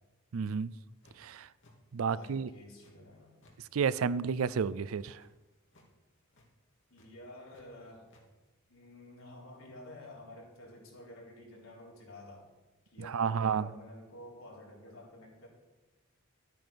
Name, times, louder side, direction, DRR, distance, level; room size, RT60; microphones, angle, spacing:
voice 1, 0.3-0.7 1.2-1.5 1.9-2.5 3.6-5.2 13.0-13.7, right 6 dB, 85° right, 0.4 m, -31 dB
sound 1, 0.7-1.3 1.6-2.3 2.6-3.6 3.8-5.3 5.6-5.9 6.2-6.5 6.9-7.6 7.9-8.2, left 1 dB, 60° left, 2.6 m, -63 dB
voice 2, 2.0-3.4 6.9-8.1 8.7-12.5 12.9-15.5, left 1 dB, 75° left, 4.1 m, -51 dB
12.5 x 9.3 x 5.2 m
head